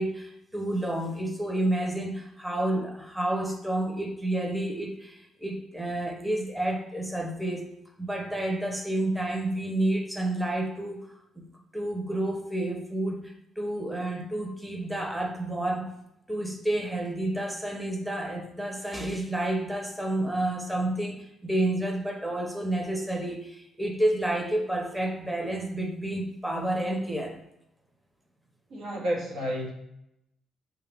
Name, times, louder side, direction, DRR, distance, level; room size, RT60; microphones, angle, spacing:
voice 1, 0.0-7.6 8.0-11.4 11.7-15.9 16.3-27.4, right 1 dB, 5° right, 1 dB, 0.7 m, -30 dB
voice 2, 28.7-29.7, equal, 80° right, -2 dB, 1.1 m, -30 dB
5.5 x 2.4 x 3.4 m, 0.81 s
cardioid pair, 90°, 0 cm